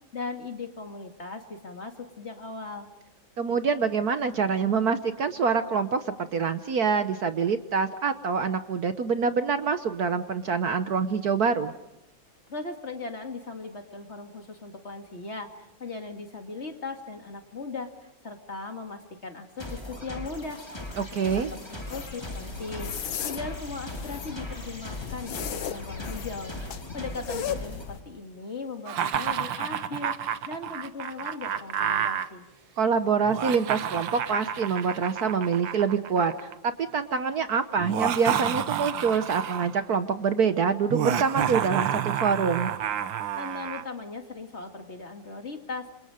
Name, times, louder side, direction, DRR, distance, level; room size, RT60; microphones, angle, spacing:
voice 1, 0.1-2.9 12.5-26.5 26.9-32.4 43.4-45.9, left 3 dB, 35° left, 4 dB, 2.4 m, -38 dB
voice 2, 3.4-11.7 21.0-21.5 32.8-42.7, right 5 dB, 55° right, 10 dB, 1.4 m, -26 dB
sound 1, 19.6-27.8, left 1 dB, 15° left, 3.8 m, -39 dB
sound 2, 21.9-28.0, left 8 dB, 85° left, 1.9 m, -36 dB
Laughter, 28.9-32.3 33.2-36.5 37.8-39.8 40.9-43.8, right 9 dB, 75° right, 1.7 m, -30 dB
28.5 x 26.5 x 5.1 m, 0.88 s
omnidirectional pair, 2.1 m